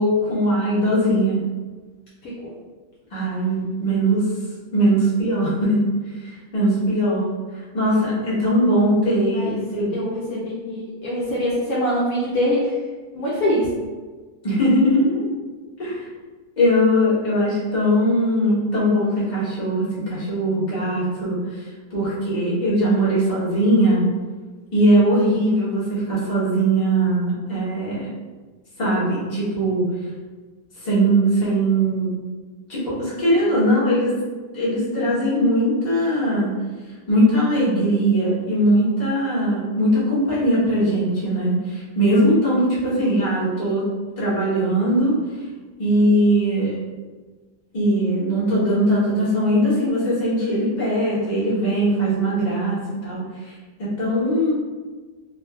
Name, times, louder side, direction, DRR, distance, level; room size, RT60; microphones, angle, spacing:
voice 1, 0.0-1.4 3.1-4.2 4.7-5.8 6.2-7.3 7.7-9.9 14.4-15.3 15.8-16.1 16.6-24.0 24.7-28.1 28.8-29.8 30.8-32.1 32.7-34.1 34.5-36.5 37.1-43.9 44.2-45.2 45.8-46.8 47.7-53.5 53.8-54.5, right 1 dB, 30° left, -9 dB, 1.2 m, -20 dB
voice 2, 9.9-12.7 13.1-13.7, equal, 70° left, -6 dB, 1.0 m, -23 dB
3.9 x 2.5 x 2.3 m, 1.4 s
omnidirectional pair, 1.7 m